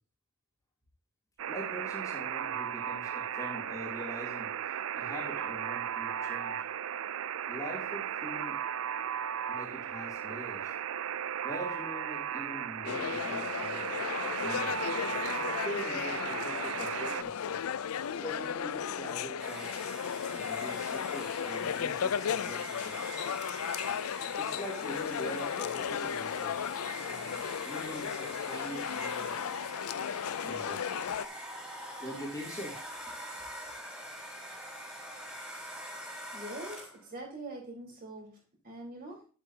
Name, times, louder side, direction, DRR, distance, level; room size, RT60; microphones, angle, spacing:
Alarm, 1.4-17.2, right 9 dB, 65° right, 0.4 m, -36 dB
voice 1, 1.5-6.6 7.5-8.6 9.5-10.7 11.4-13.9 14.4-14.8 15.4-17.6 18.2-19.8 20.3-23.1 24.4-26.6 27.0-29.4 30.4-31.0 31.7-32.7 33.1-33.2, equal, 15° left, -3 dB, 3.0 m, -43 dB
sound 1, 12.8-31.3, left 8 dB, 75° left, 0.4 m, -35 dB
Domestic sounds home sounds, 19.4-37.1, equal, 5° right, 3.5 m, -44 dB
voice 2, 36.3-39.3, right 1 dB, 45° right, -2 dB, 4.4 m, -44 dB
9.9 x 8.2 x 2.8 m, 0.37 s
head